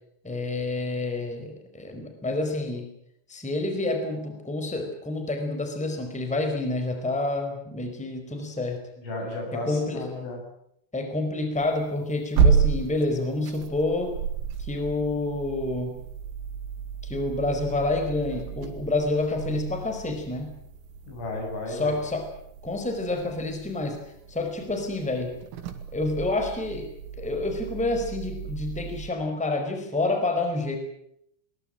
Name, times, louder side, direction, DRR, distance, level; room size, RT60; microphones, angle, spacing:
voice 1, 0.2-2.9 3.3-8.8 9.5-10.0 10.9-14.1 14.6-16.0 17.0-20.5 21.7-22.3 22.6-24.0 24.3-25.3 25.9-26.9 27.2-30.8, left 2 dB, ahead, 5 dB, 4.0 m, -28 dB
voice 2, 9.0-10.4 21.1-21.9, left 2 dB, 85° left, 2 dB, 10.5 m, -33 dB
sound 1, 11.6-29.1, right 6 dB, 85° right, 4.6 m, -31 dB
22.5 x 20.5 x 8.9 m, 0.74 s
omnidirectional pair, 5.5 m